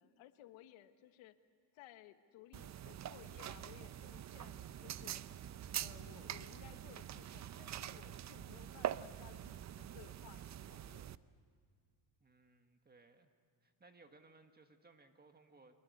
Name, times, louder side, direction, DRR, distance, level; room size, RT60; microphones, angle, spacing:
voice 1, 0.0-1.4 1.7-5.2 5.7-10.4 10.7-11.0, left 13 dB, 80° left, 10 dB, 1.5 m, -59 dB
sound 1, 2.5-11.1, right 10 dB, 35° right, 0.6 m, -45 dB
voice 2, 12.2-13.3 13.6-15.7, right 3 dB, 20° right, 6 dB, 1.7 m, -63 dB
25.0 x 21.0 x 9.7 m, 2.2 s
cardioid pair, 115°, 47 cm